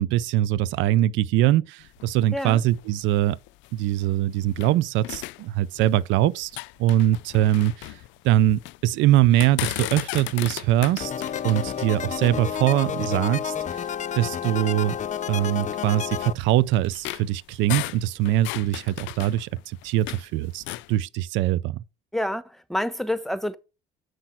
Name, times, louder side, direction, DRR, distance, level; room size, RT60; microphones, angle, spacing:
voice 1, 0.0-3.4 3.7-6.5 6.8-8.0 8.2-11.1 11.4-13.8 14.1-15.0 15.3-20.6 20.9-21.8, right 13 dB, 80° right, 0.5 m, -22 dB
sound 1, 1.8-4.8 5.0-6.1 6.4-8.8 9.2-13.2 13.9-14.0 14.4-14.6 15.3-20.3 20.6-20.9, left 19 dB, 80° left, 0.4 m, -36 dB
voice 2, 2.3-2.6 22.1-23.6, left 1 dB, ahead, 1.0 m, -28 dB
sound 2, 11.0-16.3, left 8 dB, 40° left, 0.7 m, -30 dB
7.9 x 5.9 x 5.8 m
supercardioid pair, 80°, 19 cm